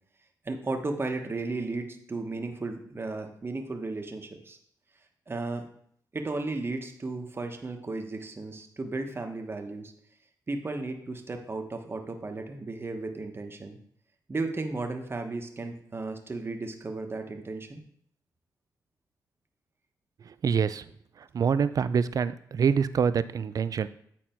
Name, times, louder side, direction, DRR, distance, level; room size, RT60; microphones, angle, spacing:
voice 1, 0.4-4.6 5.3-5.6 6.1-9.9 10.5-13.8 14.3-17.8, right 3 dB, 30° right, 4 dB, 1.2 m, -34 dB
voice 2, 20.4-20.8 21.3-23.9, right 6 dB, 55° right, 14 dB, 0.4 m, -25 dB
9.1 x 4.3 x 4.4 m, 0.65 s
cardioid pair, 70°, 7 cm